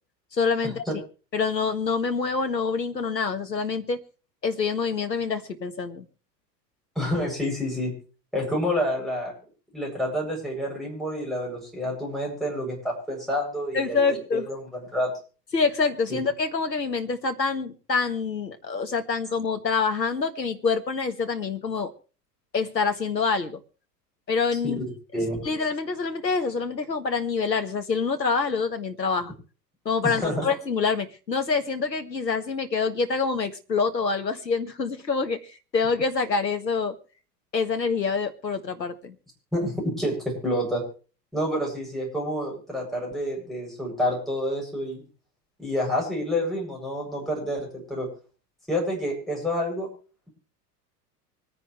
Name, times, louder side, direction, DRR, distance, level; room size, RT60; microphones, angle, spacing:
voice 1, 0.3-0.8 1.3-4.0 4.4-6.1 13.7-14.5 15.5-21.9 22.5-23.6 24.3-24.8 25.4-29.3 29.9-37.0 37.5-39.2, left 5 dB, 80° left, 8 dB, 1.7 m, -26 dB
voice 2, 7.0-7.9 8.3-9.3 9.7-14.0 14.3-15.1 16.1-16.2 24.6-24.8 25.1-25.4 30.0-30.5 39.5-40.8 41.3-45.0 45.6-48.1 48.7-49.9, equal, ahead, -3 dB, 7.7 m, -28 dB
25.0 x 9.8 x 3.3 m, 0.37 s
figure-of-eight pair, 85°, 49 cm